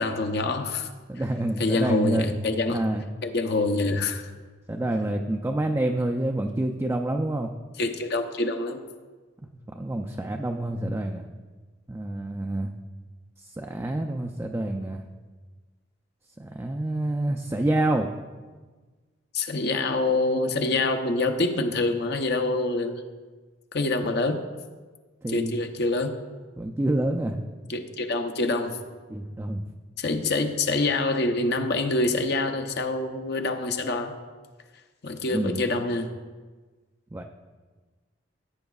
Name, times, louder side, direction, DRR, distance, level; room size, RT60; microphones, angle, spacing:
voice 1, 0.0-0.9 1.6-2.8 3.2-4.3 7.8-8.8 19.3-23.0 23.7-24.4 25.3-26.2 27.7-28.8 30.0-34.1 35.0-36.1, left 2 dB, 60° left, 5 dB, 0.7 m, -26 dB
voice 2, 1.1-2.3 2.7-3.0 4.7-7.5 9.7-11.3 11.9-12.7 13.4-15.0 16.4-18.1 25.2-25.5 26.6-27.4 29.1-29.7 35.3-35.6 37.1-37.2, right 1 dB, 15° right, 3 dB, 0.4 m, -27 dB
16.0 x 8.9 x 2.4 m, 1.4 s
head